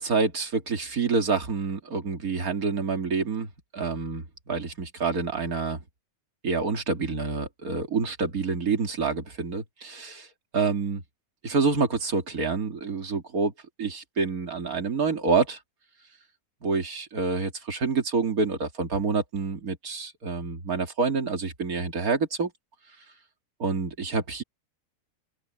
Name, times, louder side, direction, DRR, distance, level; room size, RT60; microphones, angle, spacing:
voice 1, 0.0-5.8 6.4-10.3 10.5-11.0 11.4-13.5 13.8-15.6 16.6-22.5 23.6-24.4, right 4 dB, 75° right, 2.9 m, -27 dB
open air
omnidirectional pair, 1.5 m